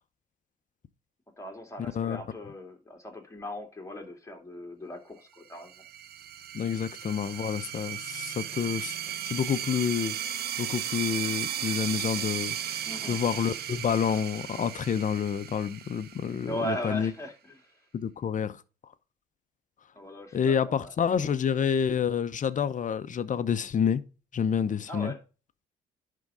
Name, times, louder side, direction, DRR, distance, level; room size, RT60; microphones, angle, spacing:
voice 1, 1.4-5.7 12.9-13.2 16.4-17.3 19.9-20.9 24.9-25.2, equal, 15° left, 2.6 m, -38 dB
sound 1, 5.6-16.8, right 10 dB, 50° right, 0.9 m, -36 dB
voice 2, 6.5-17.1 17.9-18.6 20.3-24.0 24.3-25.1, left 7 dB, 40° left, 0.9 m, -29 dB
10.5 x 3.8 x 5.0 m
hypercardioid pair, 60°, 20 cm